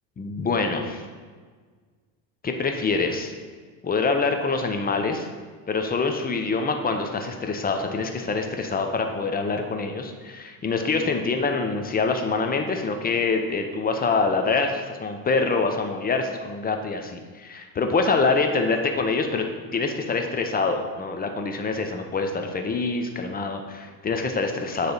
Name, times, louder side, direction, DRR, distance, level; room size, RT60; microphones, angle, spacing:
voice 1, 0.2-1.0 2.4-3.3 3.8-5.3 5.7-19.4 19.7-24.9, left 4 dB, 20° left, 4 dB, 0.6 m, -25 dB
9.3 x 3.3 x 4.0 m, 1.5 s
supercardioid pair, 110°, 42 cm